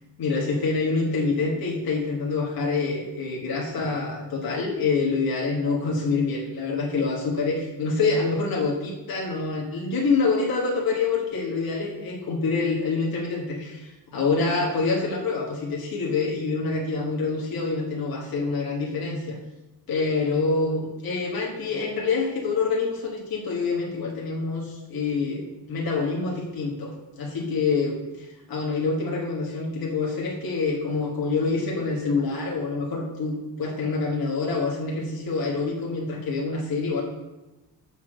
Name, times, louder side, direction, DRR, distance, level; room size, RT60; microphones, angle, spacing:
voice 1, 0.2-19.4 19.9-37.0, left 4 dB, 55° left, -3 dB, 1.6 m, -26 dB
7.1 x 4.3 x 6.3 m, 1.0 s
cardioid pair, 125°, 42 cm